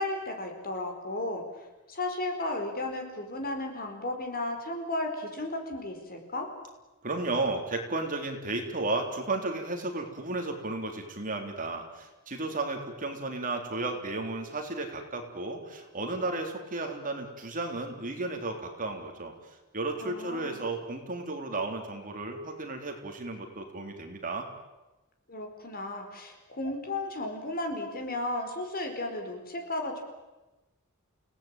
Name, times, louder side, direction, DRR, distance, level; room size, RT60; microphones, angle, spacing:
voice 1, 0.0-1.4 1.9-6.5 20.0-20.6 25.3-30.0, left 2 dB, 45° left, 4 dB, 4.7 m, -34 dB
voice 2, 7.0-19.3 19.7-24.5, right 2 dB, 40° right, 3 dB, 3.7 m, -33 dB
29.0 x 18.0 x 9.1 m, 1.1 s
head